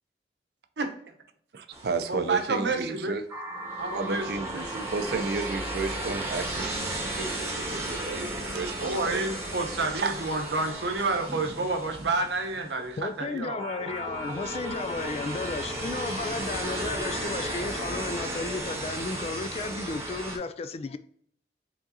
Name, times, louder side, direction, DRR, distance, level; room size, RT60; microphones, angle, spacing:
voice 1, 1.5-3.2 3.9-9.2 10.0-10.1, right 4 dB, 65° right, 0.5 m, -33 dB
sound 1, 1.7-2.5 3.3-12.9 13.6-20.4, right 1 dB, 15° right, 1.0 m, -34 dB
voice 2, 2.1-3.2 3.8-4.9 8.8-13.6, right 3 dB, 85° right, 0.9 m, -29 dB
Thunder, 10.3-15.6 15.9-16.0 16.3-16.4 16.6-16.7 17.3-17.6, right 2 dB, 15° left, 1.5 m, -50 dB
voice 3, 13.0-21.0, left 4 dB, 35° left, 0.3 m, -33 dB
4.8 x 3.8 x 2.7 m
head